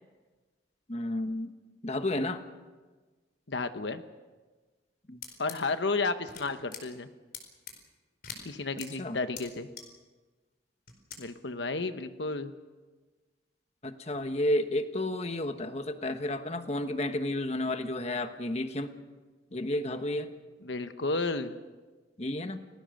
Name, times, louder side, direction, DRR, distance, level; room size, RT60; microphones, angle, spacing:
voice 1, 0.9-1.5 1.8-2.4 5.1-5.2 9.0-9.2 13.8-18.9 19.5-20.3 22.2-22.6, left 1 dB, 35° left, 8 dB, 1.3 m, -31 dB
voice 2, 3.5-4.0 5.4-7.1 8.4-9.7 11.2-12.5 20.6-21.5, left 3 dB, 75° left, 9 dB, 1.1 m, -32 dB
sound 1, 5.2-5.6 6.3-6.4 6.7-6.8 7.3-7.7 8.2-8.4 8.8-8.9 9.4-9.5 9.8-9.9 10.9-11.2, left 7 dB, 55° left, 4.6 m, -41 dB
29.5 x 18.5 x 6.5 m, 1.3 s
head